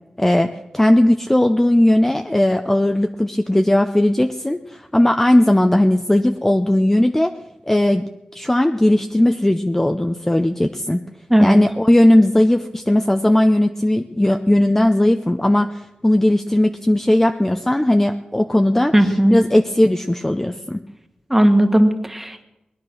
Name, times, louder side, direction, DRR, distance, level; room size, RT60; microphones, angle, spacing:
voice 1, 0.2-0.5 0.7-7.3 7.7-11.0 11.4-18.9 19.3-20.8, left 1 dB, 10° left, 5 dB, 0.7 m, -17 dB
voice 2, 18.9-19.4 21.3-22.4, equal, 10° right, 6 dB, 1.6 m, -15 dB
19.5 x 10.5 x 6.4 m, 0.98 s
wide cardioid pair, 90°, 2 cm